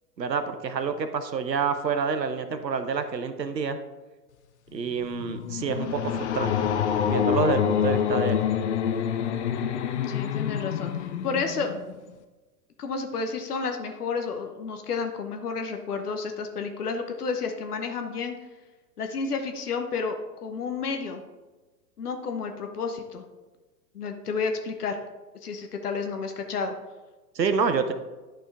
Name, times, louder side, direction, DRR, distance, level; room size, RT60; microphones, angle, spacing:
voice 1, 0.2-3.8 4.7-6.7 7.0-8.4 27.4-27.9, right 5 dB, 85° right, 9 dB, 0.8 m, -28 dB
sound 1, 4.8-12.1, left 9 dB, 45° left, 0.6 m, -27 dB
voice 2, 10.1-11.7 12.8-18.4 19.0-21.2 22.0-23.2 23.9-25.0 25.4-26.7, left 5 dB, 65° left, 5 dB, 0.9 m, -31 dB
11.0 x 4.4 x 3.5 m, 1.2 s
figure-of-eight pair, 105°, 49 cm